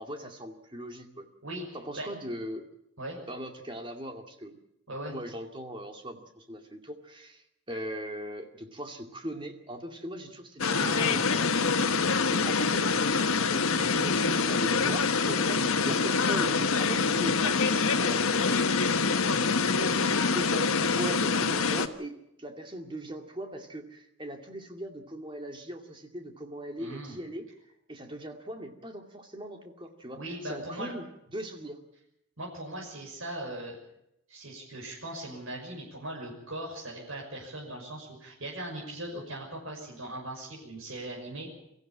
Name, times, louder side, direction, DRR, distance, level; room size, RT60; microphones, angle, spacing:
voice 1, 0.0-1.3 1.7-2.7 3.3-4.6 5.1-18.7 19.1-27.5 27.9-31.8, equal, 25° right, 5 dB, 2.3 m, -40 dB
sound 1, 10.6-21.9, left 4 dB, 85° left, 1.3 m, -25 dB
voice 2, 10.7-11.2 26.8-27.2 30.1-30.9 32.4-33.8 34.3-41.5, right 1 dB, 75° right, -2 dB, 6.2 m, -39 dB
23.5 x 15.0 x 8.8 m, 0.80 s
head